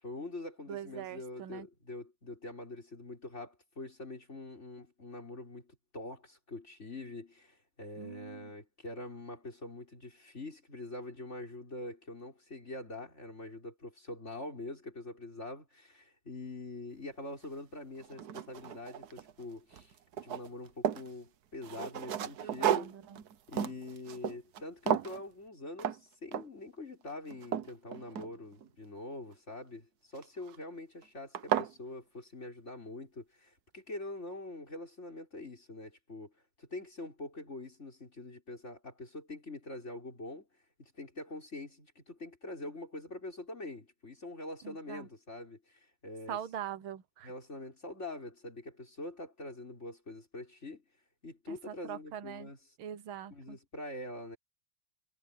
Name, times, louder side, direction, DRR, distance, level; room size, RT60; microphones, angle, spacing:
voice 1, 0.0-20.0 20.2-22.9 23.5-36.3 36.6-40.5 40.8-46.4 47.2-50.8 51.2-52.6 53.3-54.4, left 2 dB, 30° left, 5.9 m, -44 dB
voice 2, 0.7-1.7 8.0-8.5 22.2-23.2 44.6-45.1 46.3-47.3 51.5-52.5 52.8-53.6, right 9 dB, 70° right, 1.8 m, -43 dB
sound 1, 17.4-17.5 18.0-19.4 19.7-21.1 21.6-24.6 24.9-25.2 25.8-26.0 26.3-26.7 27.1-28.7 30.2-30.6 31.0-31.1 31.3-31.7, right 9 dB, 55° right, 1.2 m, -34 dB
omnidirectional pair, 2.4 m